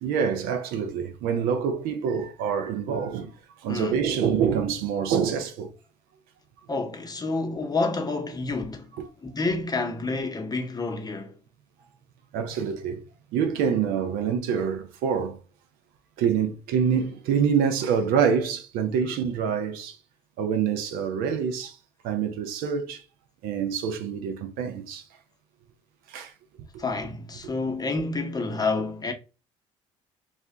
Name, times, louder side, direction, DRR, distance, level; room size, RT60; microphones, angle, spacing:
voice 1, 0.0-3.3 3.6-5.7 9.0-9.1 12.3-13.0 13.3-15.4 16.2-20.0 20.4-21.8 22.0-23.0 23.4-25.0 26.1-26.3, right 7 dB, 70° right, 0.5 m, -26 dB
voice 2, 3.7-4.0 6.7-8.9 9.2-11.3 19.1-19.2 26.8-29.1, left 3 dB, 25° left, 0.7 m, -29 dB
2.4 x 2.1 x 3.6 m
hypercardioid pair, 50°, 16 cm